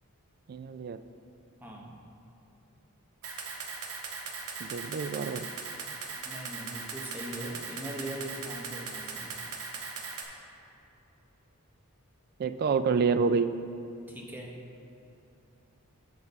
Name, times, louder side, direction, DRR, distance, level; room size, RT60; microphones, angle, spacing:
voice 1, 0.5-1.0 4.6-5.5 12.4-13.5, right 5 dB, 45° right, 11 dB, 0.3 m, -28 dB
voice 2, 1.6-2.0 6.3-9.4 14.1-14.6, right 1 dB, 10° right, -1 dB, 0.9 m, -41 dB
Camera, 3.2-10.2, right 5 dB, 85° right, 0.9 m, -39 dB
7.2 x 6.1 x 5.3 m, 2.8 s
head